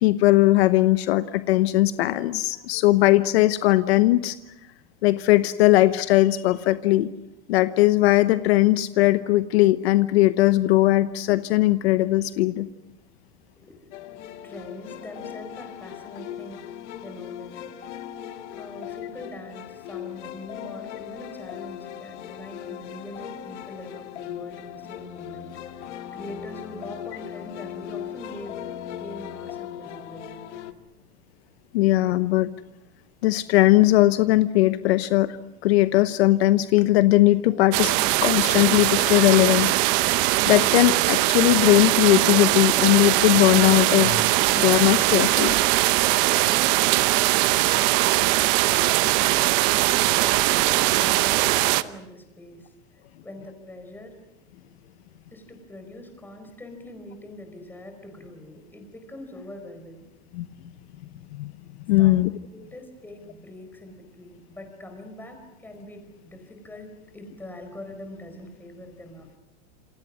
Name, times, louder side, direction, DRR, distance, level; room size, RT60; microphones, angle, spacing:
voice 1, 0.0-4.4 5.0-7.1 7.5-12.7 31.7-32.5 33.2-35.4 35.6-37.9 38.2-39.7 40.5-45.6 60.3-60.5 61.3-61.5 61.9-62.3, left 17 dB, 60° left, 12 dB, 1.0 m, -19 dB
sound 1, 13.9-30.7, left 10 dB, 75° left, 2.2 m, -38 dB
voice 2, 14.4-16.6 17.0-17.7 18.4-25.9 26.1-28.6 28.9-30.4 48.8-49.4 49.9-54.2 55.3-60.0 62.0-62.3 62.5-69.4, left 1 dB, 5° left, 5 dB, 4.5 m, -42 dB
sound 2, 37.7-51.8, right 18 dB, 40° right, 0.9 m, -21 dB
28.0 x 27.5 x 6.2 m, 0.92 s
supercardioid pair, 160°, 35 cm